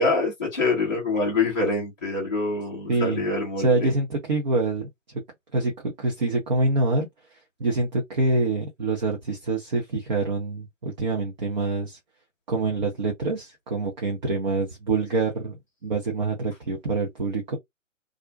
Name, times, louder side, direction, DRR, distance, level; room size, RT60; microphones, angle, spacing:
voice 1, 0.0-3.9, left 3 dB, 15° left, 0.5 m, -25 dB
voice 2, 2.9-3.2 3.6-4.9 5.5-5.7 6.0-7.1 7.6-12.0 12.5-15.5 15.8-17.6, right 3 dB, 35° right, 0.6 m, -25 dB
2.4 x 2.1 x 2.4 m
figure-of-eight pair, 140°, 39 cm